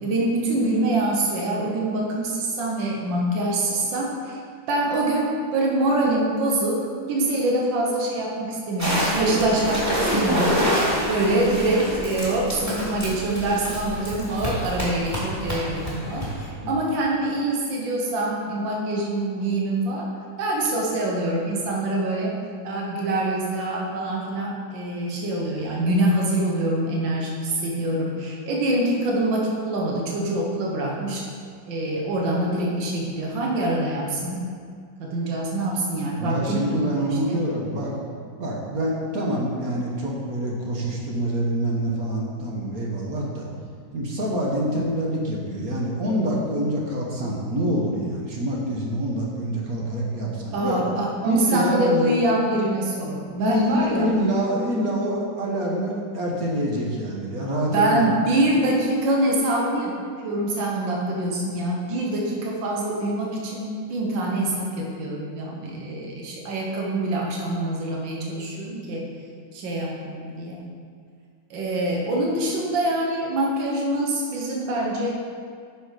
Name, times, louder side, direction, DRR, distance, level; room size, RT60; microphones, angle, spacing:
voice 1, 0.0-4.4 4.7-10.7 11.1-20.1 20.4-22.4 22.6-31.2 31.7-34.4 35.0-37.4 50.5-54.1 57.7-60.0 60.2-69.1 69.5-70.6 71.5-75.1, right 1 dB, 80° right, -2 dB, 1.9 m, -25 dB
sound 1, 8.8-16.5, equal, 10° right, 2.5 m, -27 dB
voice 2, 36.2-37.9 38.4-43.5 43.9-50.8 51.2-52.1 53.4-58.1, equal, 50° right, -3 dB, 1.7 m, -26 dB
9.1 x 6.0 x 4.9 m, 2.1 s
omnidirectional pair, 2.0 m